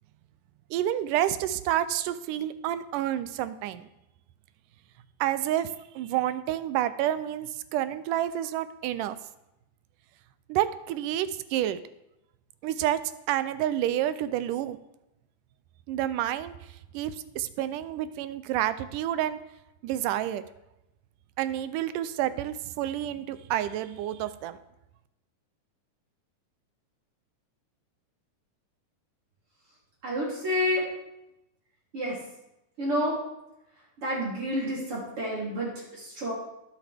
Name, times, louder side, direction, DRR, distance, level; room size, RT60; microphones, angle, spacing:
voice 1, 0.7-3.9 5.2-5.7 6.0-9.2 10.5-11.8 12.6-13.0 13.3-14.8 15.9-16.5 16.9-19.4 19.8-20.4 21.4-24.6, right 12 dB, 85° right, 13 dB, 2.2 m, -29 dB
voice 2, 30.0-30.8 31.9-32.2 32.8-33.2 34.0-36.3, equal, 45° right, -5 dB, 3.8 m, -29 dB
20.5 x 7.4 x 3.5 m, 0.90 s
omnidirectional pair, 3.7 m